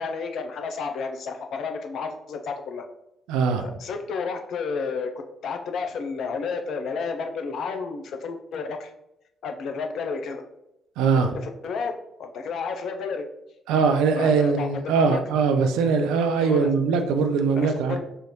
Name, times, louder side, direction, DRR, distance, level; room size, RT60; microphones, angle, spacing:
voice 1, 0.0-2.8 3.6-5.1 5.4-8.9 9.4-10.4 11.2-11.9 12.2-13.3 14.2-15.2 16.4-16.7 17.5-18.0, left 5 dB, 55° left, 5 dB, 0.5 m, -31 dB
voice 2, 3.3-3.7 11.0-11.3 13.7-17.9, right 5 dB, 65° right, 5 dB, 0.4 m, -21 dB
5.5 x 2.6 x 3.0 m, 0.87 s
figure-of-eight pair, 40°, 0 cm